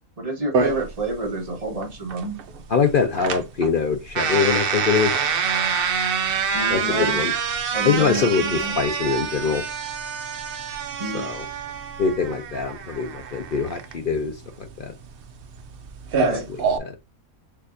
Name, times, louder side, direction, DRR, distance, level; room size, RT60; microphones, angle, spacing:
voice 1, 0.2-2.4 6.5-7.2 7.7-8.7 11.0-11.3 16.1-16.4, right 2 dB, 25° right, 1.1 m, -28 dB
sound 1, 0.5-16.8, right 6 dB, 60° right, 0.6 m, -26 dB
voice 2, 2.7-5.2 6.7-7.3 7.8-9.6 11.0-11.5 12.0-14.9 16.2-16.9, left 6 dB, 70° left, 0.5 m, -24 dB
6.6 x 2.8 x 2.5 m
omnidirectional pair, 1.6 m